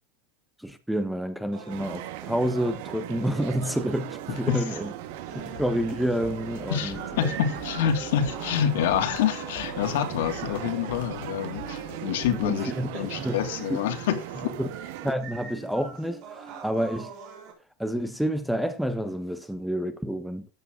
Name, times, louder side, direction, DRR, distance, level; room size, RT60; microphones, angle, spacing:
voice 1, 0.6-4.9 5.4-7.3 12.4-13.4 13.7-13.8 14.6-14.7 15.0-17.1 17.8-20.5, equal, ahead, 1.0 m, -29 dB
sound 1, 1.5-17.5, right 6 dB, 40° right, 4.2 m, -45 dB
sound 2, 1.7-15.1, right 13 dB, 60° right, 1.4 m, -38 dB
sound 3, 5.3-12.5, left 6 dB, 70° left, 2.4 m, -44 dB
voice 2, 6.7-14.2, left 9 dB, 85° left, 2.8 m, -27 dB
14.0 x 9.8 x 3.8 m
supercardioid pair, 170°, 0 cm